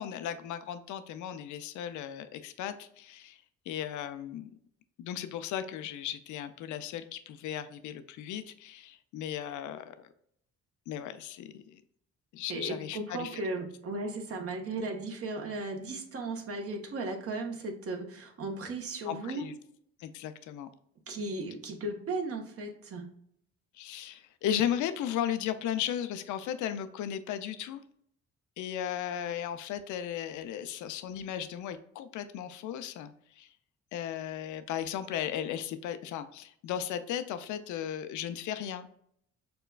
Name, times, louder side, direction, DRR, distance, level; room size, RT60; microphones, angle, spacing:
voice 1, 0.0-3.4 3.7-4.5 5.0-10.1 10.9-11.8 12.3-13.4 19.0-19.5 20.0-20.7 23.7-27.8 28.6-33.1 33.4-33.5 33.9-38.9, left 10 dB, 75° left, 11 dB, 0.5 m, -36 dB
voice 2, 12.5-19.5 21.1-23.1, right 2 dB, 50° right, 2 dB, 1.0 m, -36 dB
6.6 x 2.2 x 2.3 m, 0.69 s
cardioid pair, 90°, 30 cm